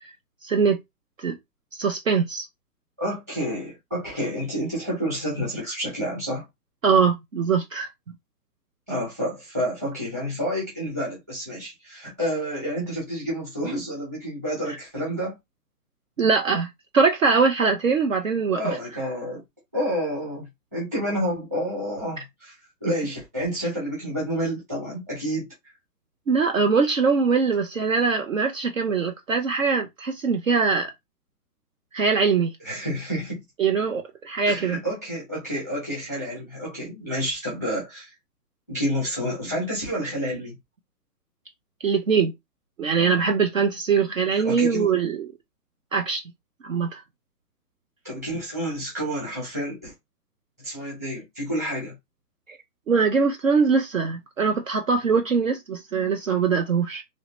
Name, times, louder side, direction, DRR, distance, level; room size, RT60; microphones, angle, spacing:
voice 1, 0.4-0.8 1.2-1.4 1.7-2.5 6.8-7.9 16.2-18.6 26.3-30.9 31.9-32.5 33.6-34.8 41.8-42.3 42.8-45.3 45.9-46.2 46.6-47.0 52.5-52.6 52.9-57.0, right 5 dB, 55° right, 0.5 m, -22 dB
voice 2, 3.0-6.5 8.9-15.4 18.5-19.4 19.7-22.5 22.8-25.5 32.6-33.4 34.5-38.1 38.7-40.5 44.3-44.9 48.0-49.9 50.6-51.9, equal, 10° right, 1.0 m, -29 dB
3.0 x 2.7 x 3.0 m
hypercardioid pair, 175°, 49 cm